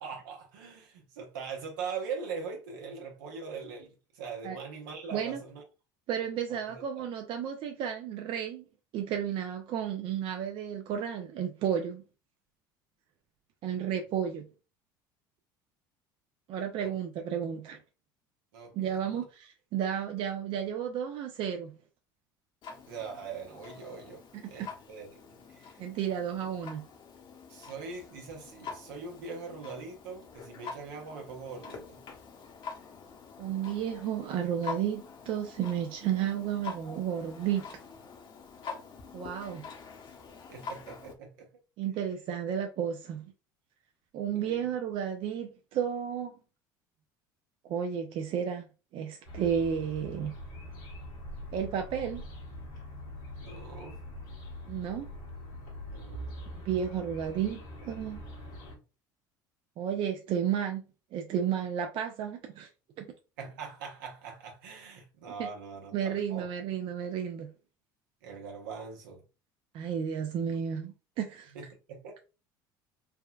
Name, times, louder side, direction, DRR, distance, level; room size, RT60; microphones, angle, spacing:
voice 1, 0.0-5.6 6.5-6.8 16.8-16.9 18.5-19.2 22.9-25.1 25.5-25.8 27.5-32.0 40.5-41.5 44.3-44.6 53.4-54.0 55.9-56.4 63.4-66.5 68.2-69.2 71.5-72.2, right 5 dB, 85° right, 0.9 m, -42 dB
voice 2, 6.1-8.6 8.9-12.0 13.6-14.5 16.5-17.8 18.7-21.7 24.6-24.7 25.8-26.8 33.4-37.7 39.1-39.6 41.8-43.3 44.1-46.4 47.6-48.7 48.9-50.3 51.5-52.2 54.7-55.1 56.7-58.2 59.8-60.8 61.1-62.7 63.0-63.1 65.4-65.5 65.9-67.5 69.7-71.5, right 8 dB, 55° right, 0.4 m, -32 dB
Clock, 22.6-41.1, left 5 dB, 50° left, 0.8 m, -46 dB
sound 1, 49.2-58.8, left 1 dB, 85° left, 1.4 m, -43 dB
3.4 x 2.2 x 2.3 m
hypercardioid pair, 80°, 11 cm